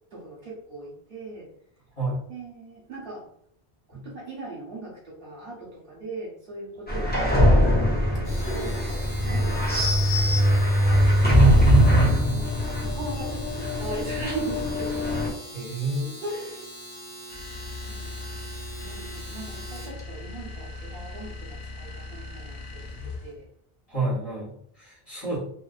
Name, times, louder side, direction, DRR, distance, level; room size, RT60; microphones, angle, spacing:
voice 1, 0.1-1.5 2.3-3.3 3.9-7.5 8.0-9.9 10.2-10.5 10.8-11.2 12.2-15.1 16.2-16.7 17.9-18.1 18.7-23.5, right 2 dB, 60° right, -5 dB, 1.0 m, -39 dB
sound 1, 6.9-15.3, equal, 15° left, 0.3 m, -21 dB
Domestic sounds home sounds, 8.1-20.0, right 1 dB, 5° right, 0.7 m, -42 dB
voice 2, 11.9-12.3 15.5-16.2 23.9-25.4, right 2 dB, 30° left, -9 dB, 0.9 m, -29 dB
sound 2, 17.3-23.4, left 3 dB, 75° left, 0.8 m, -39 dB
2.5 x 2.1 x 2.4 m, 0.66 s
omnidirectional pair, 1.0 m